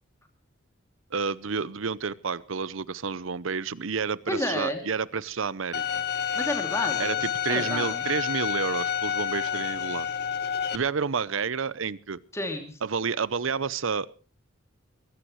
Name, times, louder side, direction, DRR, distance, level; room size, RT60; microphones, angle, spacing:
voice 1, 1.1-6.0 7.0-10.1 10.7-12.2 12.8-14.1, right 5 dB, 80° right, 19 dB, 0.7 m, -30 dB
voice 2, 4.3-4.8 6.3-7.2 7.5-8.0 12.3-12.8, left 1 dB, 15° left, 4 dB, 2.6 m, -30 dB
Bowed string instrument, 5.7-10.7, left 8 dB, 50° left, 1.4 m, -29 dB
21.5 x 16.5 x 3.1 m, 0.37 s
head